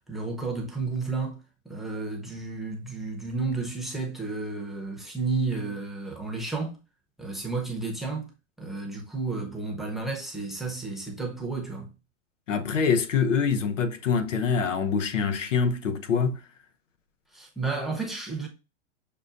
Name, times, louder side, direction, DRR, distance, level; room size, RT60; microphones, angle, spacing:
voice 1, 0.1-6.8 7.2-8.3 8.6-11.9 17.3-18.5, right 3 dB, ahead, 0.7 m, -32 dB
voice 2, 12.5-16.4, left 6 dB, 90° left, 0.8 m, -25 dB
6.7 x 2.2 x 2.5 m
hypercardioid pair, 130°, 36 cm